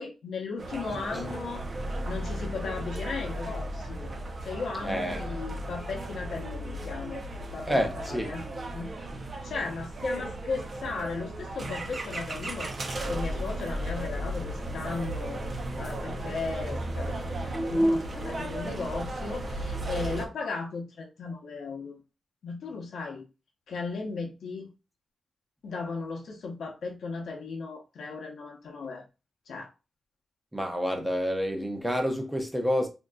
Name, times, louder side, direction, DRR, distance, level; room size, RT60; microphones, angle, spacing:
voice 1, 0.0-1.6 2.0-4.1 4.4-7.2 7.5-8.4 8.7-9.0 9.4-22.0 22.4-23.2 23.7-24.7 25.6-29.0 29.5-29.7, left 4 dB, 80° left, 0.8 m, -36 dB
sound 1, 0.6-20.3, right 1 dB, 40° right, 0.5 m, -35 dB
voice 2, 4.8-5.4 7.7-8.3 17.5-18.0 30.5-32.9, equal, 5° right, 0.7 m, -28 dB
3.7 x 2.6 x 2.3 m
wide cardioid pair, 130°, 0 cm